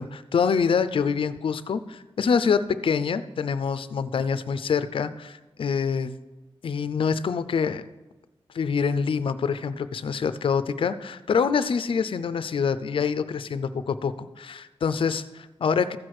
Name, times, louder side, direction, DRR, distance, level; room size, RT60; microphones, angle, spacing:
voice 1, 0.0-6.2 6.6-7.8 8.5-16.0, left 6 dB, 65° left, 13 dB, 0.5 m, -26 dB
14.5 x 6.1 x 4.8 m, 1.1 s
wide cardioid pair, 145°, 10 cm